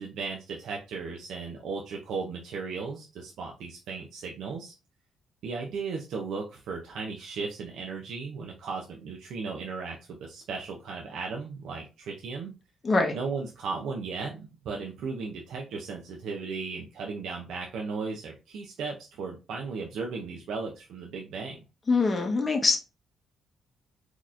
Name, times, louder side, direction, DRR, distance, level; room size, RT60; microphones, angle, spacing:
voice 1, 0.0-4.7 5.4-12.5 13.1-21.6, right 4 dB, 75° right, 1 dB, 0.6 m, -36 dB
voice 2, 12.8-13.2 21.9-22.8, left 3 dB, 30° left, 3 dB, 0.8 m, -23 dB
4.0 x 3.0 x 2.5 m, 0.30 s
cardioid pair, 90°, 0 cm